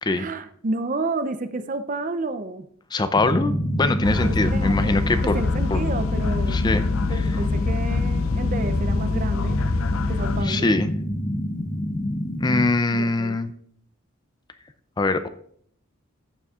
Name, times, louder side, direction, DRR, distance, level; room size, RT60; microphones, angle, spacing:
voice 1, 0.1-2.7 4.2-6.6 7.1-9.6 10.1-10.7 12.9-13.4, right 3 dB, 40° right, 10 dB, 0.5 m, -31 dB
voice 2, 2.9-5.4 5.7-5.8 6.5-6.8 7.1-7.3 10.4-10.9 12.4-13.5 15.0-15.3, left 2 dB, 20° left, 11 dB, 0.4 m, -23 dB
sound 1, 3.2-12.7, equal, 35° left, 1.0 m, -27 dB
sound 2, 4.0-10.4, left 4 dB, 80° left, 0.5 m, -25 dB
14.5 x 6.9 x 2.4 m, 0.62 s
head